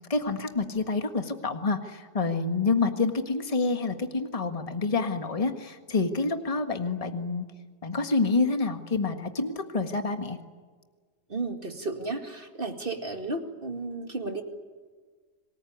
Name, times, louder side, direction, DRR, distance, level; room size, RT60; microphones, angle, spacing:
voice 1, 0.1-7.4 7.8-10.4, left 3 dB, 20° left, 7 dB, 1.7 m, -27 dB
voice 2, 11.3-14.4, right 3 dB, 35° right, 6 dB, 2.2 m, -33 dB
27.0 x 20.0 x 9.6 m, 1.5 s
omnidirectional pair, 1.7 m